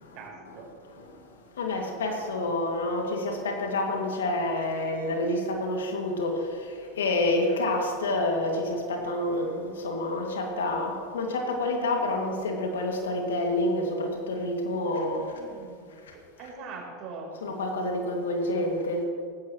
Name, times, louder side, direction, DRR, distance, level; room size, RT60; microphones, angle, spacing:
voice 1, 0.0-0.7 15.3-15.9 16.1-17.3, right 4 dB, 50° right, -1 dB, 4.3 m, -42 dB
voice 2, 0.8-15.3 16.0-16.1 17.4-19.0, left 2 dB, 80° left, 1 dB, 2.4 m, -28 dB
18.0 x 15.5 x 3.2 m, 2.2 s
hypercardioid pair, 85°, 0 cm